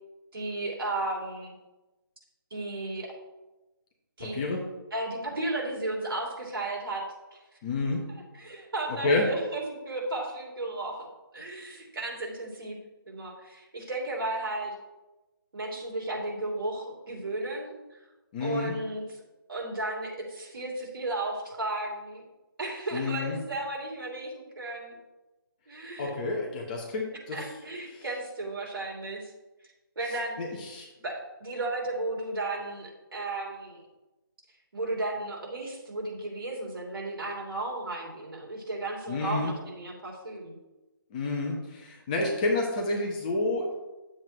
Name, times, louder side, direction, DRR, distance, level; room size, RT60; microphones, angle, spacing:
voice 1, 0.3-1.5 2.5-3.2 4.2-4.4 4.9-7.0 7.3-7.4 8.4-11.1 11.3-14.7 15.5-17.8 18.4-19.2 19.5-22.2 22.6-25.0 25.7-26.1 27.3-29.3 29.9-30.4 31.0-33.8 34.7-40.6, right 2 dB, 70° right, -2 dB, 3.1 m, -34 dB
voice 2, 7.6-8.0 9.0-9.3 18.3-18.7 22.9-23.4 26.0-27.4 27.9-28.0 30.4-30.9 39.1-39.5 41.1-43.7, left 2 dB, 20° left, -1 dB, 1.2 m, -29 dB
9.9 x 7.7 x 3.2 m, 1.1 s
hypercardioid pair, 165°, 12 cm